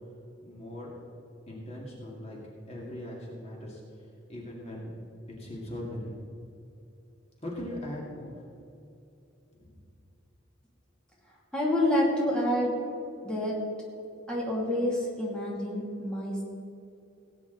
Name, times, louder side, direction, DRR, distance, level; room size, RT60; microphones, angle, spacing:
voice 1, 0.4-0.9 1.5-2.4 2.7-3.8 4.3-4.9 5.4-6.2 7.4-8.4 9.6-9.8, left 1 dB, 35° left, -3 dB, 2.3 m, -39 dB
voice 2, 11.5-12.8 13.2-13.7 14.3-16.4, left 1 dB, 5° left, -5 dB, 2.7 m, -28 dB
18.0 x 9.4 x 4.0 m, 2.7 s
head